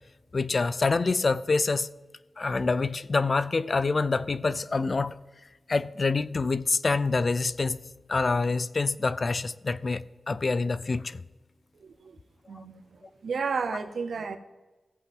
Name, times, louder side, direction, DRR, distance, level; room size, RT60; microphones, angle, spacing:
voice 1, 0.3-1.9 2.4-5.1 5.7-7.8 8.1-11.2, left 3 dB, 50° left, 0.4 m, -26 dB
voice 2, 11.8-12.2 12.5-12.8 13.2-14.4, right 5 dB, 80° right, 0.8 m, -32 dB
16.0 x 7.8 x 3.6 m
cardioid pair, 70°, 0 cm